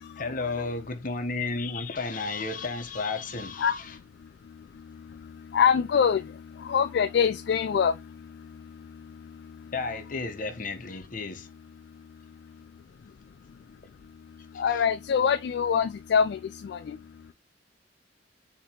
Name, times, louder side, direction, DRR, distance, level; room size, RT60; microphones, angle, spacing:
voice 1, 0.2-4.0 9.7-11.5 14.5-14.8, left 3 dB, 45° left, 0.9 m, -33 dB
voice 2, 5.5-6.2 6.7-7.9 14.6-16.4 16.7-16.8, left 7 dB, 65° left, 0.3 m, -23 dB
6.5 x 2.9 x 2.8 m
head